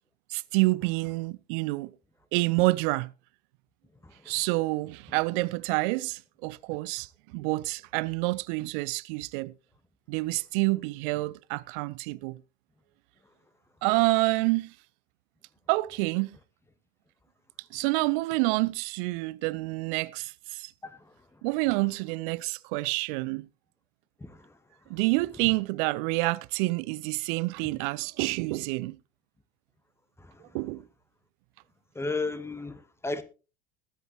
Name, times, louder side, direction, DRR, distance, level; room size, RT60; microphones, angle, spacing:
voice 1, 0.3-1.9 2.3-3.1 4.3-9.5 10.1-12.4 13.8-14.7 15.7-16.4 17.7-20.7 21.4-23.5 24.9-29.0 30.5-30.8, right 23 dB, 45° right, 0.5 m, -28 dB
voice 2, 20.8-21.1 24.2-24.6 30.2-30.6 31.9-33.2, left 3 dB, 5° left, 1.3 m, -35 dB
21.5 x 7.9 x 3.0 m
figure-of-eight pair, 75°, 36 cm